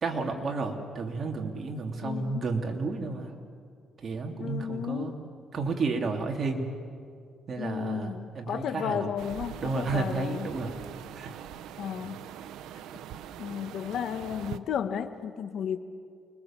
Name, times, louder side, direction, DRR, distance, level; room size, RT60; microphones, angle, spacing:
voice 1, 0.0-3.3 4.0-5.1 5.5-6.7 7.5-9.1 9.6-10.8 11.1-11.3, right 3 dB, 45° right, 2 dB, 3.0 m, -31 dB
voice 2, 2.0-2.4 4.4-5.2 7.6-10.5 11.8-12.2 13.4-15.8, left 8 dB, 70° left, 9 dB, 1.4 m, -33 dB
sound 1, 9.2-14.6, right 10 dB, 90° right, 0.8 m, -42 dB
29.5 x 21.0 x 7.5 m, 2.2 s
cardioid pair, 105°, 0 cm